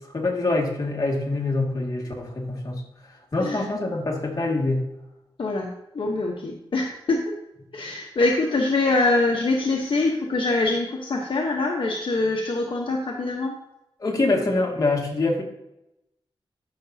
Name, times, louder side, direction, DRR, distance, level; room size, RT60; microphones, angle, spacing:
voice 1, 0.1-2.8 3.3-4.8 14.0-15.4, left 2 dB, 40° left, -1 dB, 2.0 m, -25 dB
voice 2, 5.4-7.2 7.7-13.6, left 2 dB, 60° left, 0 dB, 1.0 m, -24 dB
12.0 x 6.0 x 2.8 m, 0.88 s
wide cardioid pair, 95°, 10 cm